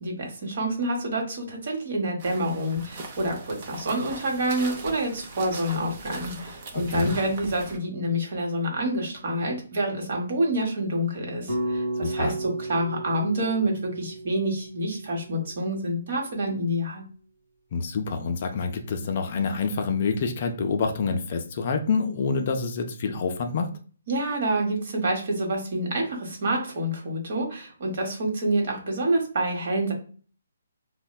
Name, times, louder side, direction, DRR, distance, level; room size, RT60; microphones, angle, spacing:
voice 1, 0.0-17.0 24.1-29.9, right 1 dB, 50° right, 1 dB, 0.9 m, -27 dB
sound 1, 2.2-7.8, right 2 dB, 30° right, 0.5 m, -40 dB
voice 2, 6.7-7.1 12.0-12.3 17.7-23.7, left 4 dB, 40° left, 5 dB, 0.4 m, -27 dB
sound 2, 11.5-15.7, right 1 dB, ahead, 0.9 m, -33 dB
4.1 x 2.0 x 2.2 m, 0.41 s
hypercardioid pair, 165°, 0 cm